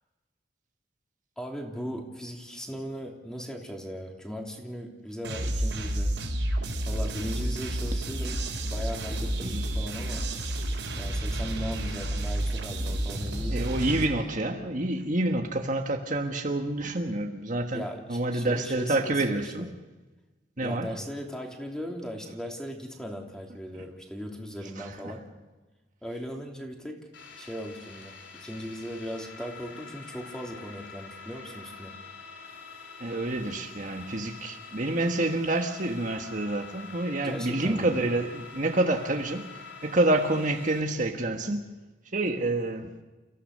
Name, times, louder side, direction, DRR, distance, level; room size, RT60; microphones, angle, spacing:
voice 1, 1.4-6.1 6.9-10.3 11.0-13.7 17.7-19.7 20.6-25.3 26.0-27.0 27.4-31.9 37.2-37.9, equal, 5° left, 1 dB, 3.1 m, -38 dB
sound 1, 5.2-14.1, right 1 dB, 75° right, 4.5 m, -30 dB
voice 2, 13.5-17.8 18.1-19.7 20.6-20.9 23.7-23.8 24.8-25.1 33.0-39.5 39.8-41.7 42.1-42.9, right 2 dB, 45° right, 4 dB, 1.5 m, -28 dB
sound 2, 27.1-40.8, left 4 dB, 85° left, 3.5 m, -46 dB
29.5 x 15.5 x 6.7 m, 1.2 s
head